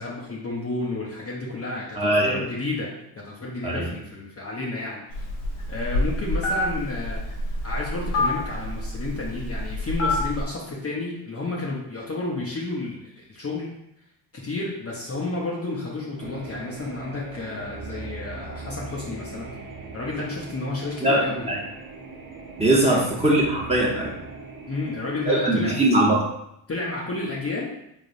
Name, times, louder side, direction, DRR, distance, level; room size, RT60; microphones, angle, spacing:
voice 1, 0.0-5.2 5.7-7.2 7.6-13.7 14.3-19.5 19.9-21.5 22.8-23.0 24.7-25.7 26.7-27.7, left 2 dB, 30° left, -4 dB, 0.9 m, -31 dB
voice 2, 1.9-2.4 3.6-3.9 21.0-21.6 22.6-24.1 25.2-26.2, right 1 dB, 15° right, -5 dB, 1.3 m, -21 dB
Telephone, 5.1-10.4, left 1 dB, 90° left, 1.3 m, -27 dB
sound 1, 16.2-25.3, right 3 dB, 40° right, 1.1 m, -40 dB
3.7 x 3.3 x 2.6 m, 0.79 s
supercardioid pair, 65°, 50 cm